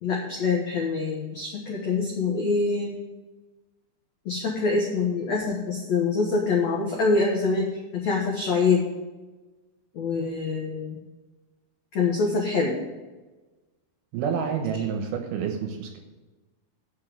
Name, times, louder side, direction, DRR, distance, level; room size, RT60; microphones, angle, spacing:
voice 1, 0.0-3.0 4.3-8.8 9.9-11.0 11.9-12.8, left 4 dB, 75° left, -1 dB, 1.6 m, -25 dB
voice 2, 14.1-16.0, right 7 dB, 70° right, 4 dB, 2.6 m, -28 dB
7.0 x 6.6 x 7.6 m, 1.2 s
omnidirectional pair, 5.0 m